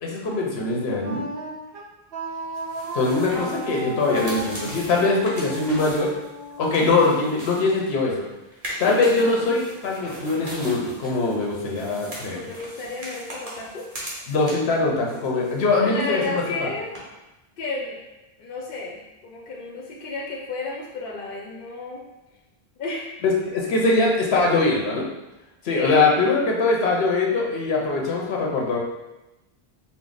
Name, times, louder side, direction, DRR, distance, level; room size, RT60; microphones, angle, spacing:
voice 1, 0.0-1.3 2.9-6.1 6.6-8.3 8.8-12.4 14.3-16.4 23.2-25.1 25.6-28.8, left 3 dB, 90° left, -1 dB, 1.0 m, -22 dB
Wind instrument woodwind instrument, 1.0-7.9, right 1 dB, 70° right, 0.9 m, -35 dB
sound 1, 2.6-8.1 8.5-14.8 15.1-15.9 16.2-16.3 17.0-17.1, right 1 dB, 40° right, 1.0 m, -39 dB
voice 2, 12.2-13.9 15.8-16.9 17.6-18.0 18.4-22.0 22.8-23.2 25.7-26.5, left 3 dB, 65° left, -2 dB, 0.8 m, -32 dB
4.6 x 2.1 x 3.9 m, 1.0 s
omnidirectional pair, 1.0 m